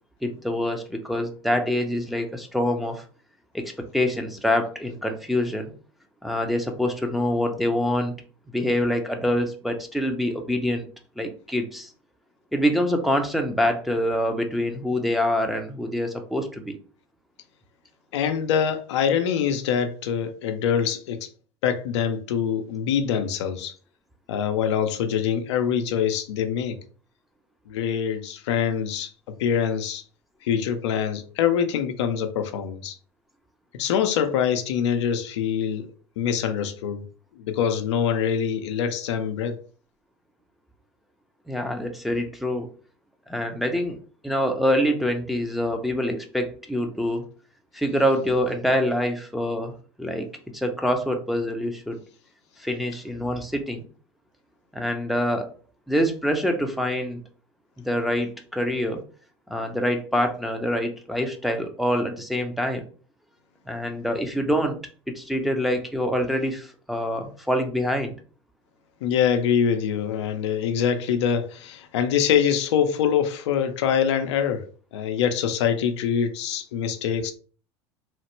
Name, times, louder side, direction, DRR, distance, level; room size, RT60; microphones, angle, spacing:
voice 1, 0.2-3.0 3.5-5.7 6.2-8.1 8.5-10.9 11.2-11.9 12.5-16.8 41.5-42.7 43.3-44.0 44.2-47.2 47.7-49.7 50.0-52.0 52.6-53.8 54.7-55.5 55.9-57.2 57.8-59.0 59.5-62.8 63.7-64.8 65.1-68.2, equal, ahead, 3 dB, 0.5 m, -25 dB
voice 2, 18.1-21.2 21.6-23.7 24.3-26.8 27.7-29.1 29.4-30.0 30.4-33.0 33.8-35.9 36.2-37.0 37.4-39.6 69.0-74.6 74.9-77.3, left 8 dB, 80° left, 7 dB, 0.5 m, -24 dB
3.1 x 2.1 x 3.0 m, 0.41 s
hypercardioid pair, 90°, 15 cm